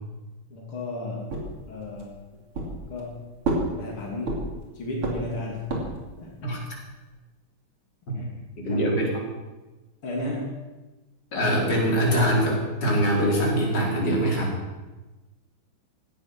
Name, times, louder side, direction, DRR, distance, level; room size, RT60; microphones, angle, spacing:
voice 1, 0.5-1.3 1.7-2.2 2.9-3.3 3.8-4.5 4.8-5.7 6.2-6.6 8.1-8.3 8.6-8.8 10.0-10.6, left 2 dB, 90° left, -2 dB, 3.7 m, -33 dB
sound 1, 1.3-2.1 2.5-3.1 3.4-4.7 5.0-6.1, right 2 dB, 85° right, 3.7 m, -29 dB
voice 2, 8.6-9.3 11.3-14.5, equal, 55° left, -3 dB, 4.8 m, -23 dB
17.0 x 13.0 x 6.1 m, 1.2 s
omnidirectional pair, 2.3 m